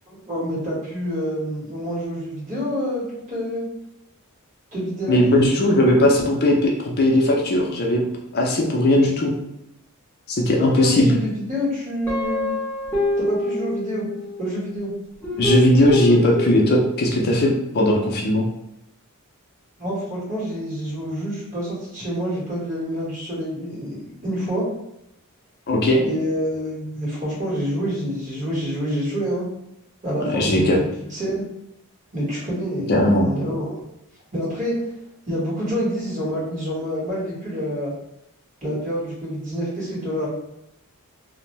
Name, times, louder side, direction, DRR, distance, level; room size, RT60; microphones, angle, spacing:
voice 1, 0.1-3.6 4.7-5.2 10.6-12.4 13.2-14.1 14.4-14.9 19.8-24.6 26.0-29.4 30.0-30.8 31.1-31.4 32.1-33.8 34.3-34.8 35.3-37.9 38.6-40.3, equal, 35° right, -7 dB, 1.4 m, -27 dB
voice 2, 5.1-8.0 8.3-9.3 10.3-11.1 15.4-18.5 25.7-26.0 30.2-30.8 32.9-33.3, left 1 dB, 45° left, -1 dB, 0.4 m, -18 dB
Guitar, 12.1-14.5 15.2-17.2, left 1 dB, 10° left, 0.7 m, -26 dB
2.6 x 2.1 x 3.0 m, 0.84 s
head